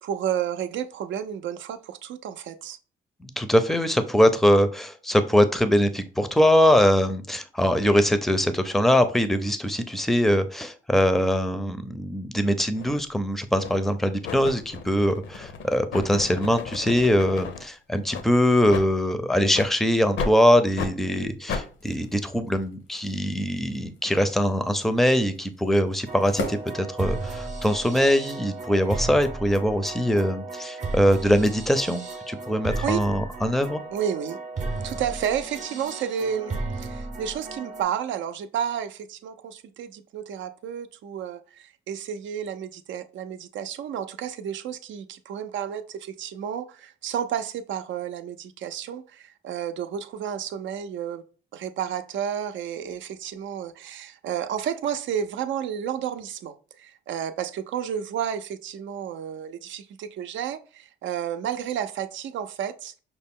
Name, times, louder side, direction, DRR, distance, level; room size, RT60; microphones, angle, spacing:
voice 1, 0.0-2.8 32.8-33.0 33.9-34.4 34.8-51.2 51.5-62.9, right 9 dB, 70° right, 0.5 m, -31 dB
voice 2, 3.2-33.8, equal, ahead, 0.5 m, -22 dB
sound 1, 12.8-12.9 13.6-13.9 14.2-17.6 18.1-18.3 18.7-18.9 19.5-19.7 20.2-20.4 20.8-20.9 21.5-21.7, left 5 dB, 70° left, 0.7 m, -33 dB
sound 2, 21.6-27.6, left 2 dB, 90° left, 1.0 m, -41 dB
sound 3, 26.1-37.8, right 3 dB, 35° right, 0.7 m, -34 dB
5.8 x 2.1 x 3.6 m
cardioid pair, 90°, 20 cm